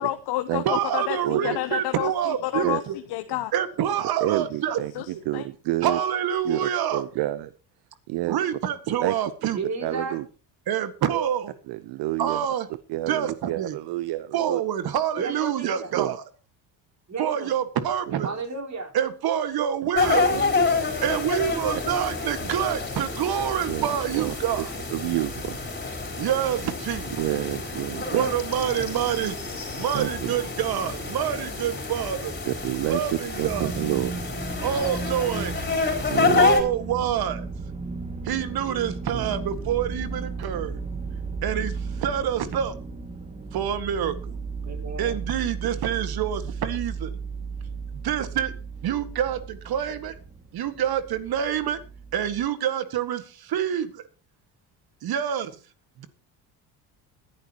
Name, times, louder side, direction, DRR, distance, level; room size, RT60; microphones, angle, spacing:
voice 1, 0.0-3.5 4.9-5.5, left 15 dB, 70° left, 1.0 m, -30 dB
voice 2, 0.7-3.0 3.5-4.8 5.1-5.2 5.8-7.0 8.3-9.6 10.7-11.5 12.2-12.7 13.1-13.8 14.3-16.2 17.2-18.3 18.9-20.2 21.0-24.7 26.2-27.1 28.1-29.4 29.7-32.4 32.8-33.7 34.6-35.6 36.4-37.5 38.2-40.8 41.4-42.8 43.5-44.3 45.0-47.1 48.0-48.5 48.8-50.2 50.5-51.8 52.1-54.1 55.0-55.5 56.0-56.1, right 9 dB, 60° right, 1.9 m, -27 dB
voice 3, 1.2-1.6 2.6-2.8 4.2-6.0 6.4-7.5 8.1-8.4 9.0-9.1 9.8-10.2 11.7-12.4 12.7-14.6 15.9-16.2 18.2-18.4 20.3-20.4 23.7-23.9 24.1-24.7 24.9-25.6 27.2-28.3 29.9-30.3 32.5-33.0 33.4-34.2 36.1-36.5 39.1-39.3, right 16 dB, 75° right, 0.9 m, -29 dB
voice 4, 9.5-10.2 15.2-15.9 17.1-17.5 18.2-18.9 20.0-20.8 44.6-45.2, right 3 dB, 40° right, 4.5 m, -33 dB
sound 1, 19.9-36.6, left 4 dB, 25° left, 4.4 m, -28 dB
sound 2, 33.4-52.5, right 4 dB, 15° right, 2.1 m, -35 dB
21.0 x 11.0 x 3.0 m
cardioid pair, 100°, 41 cm